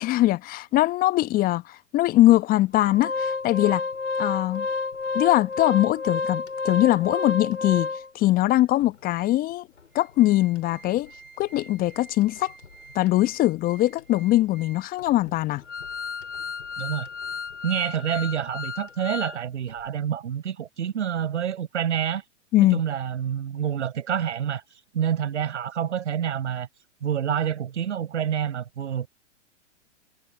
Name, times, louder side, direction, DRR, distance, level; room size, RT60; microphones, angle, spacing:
voice 1, 0.0-3.8 4.2-4.7 5.1-7.9 8.1-9.7 9.9-11.1 11.4-12.5 12.9-15.6 22.5-22.8, left 16 dB, 25° left, 1.0 m, -22 dB
Organ, 2.7-8.3 8.8-8.9 9.2-9.3 9.8-19.4 19.7-19.8, left 4 dB, 80° left, 6.1 m, -32 dB
voice 2, 16.8-17.1 17.6-22.2 22.7-26.7 27.0-29.1, right 9 dB, 65° right, 6.0 m, -27 dB
figure-of-eight pair, 115°, 37 cm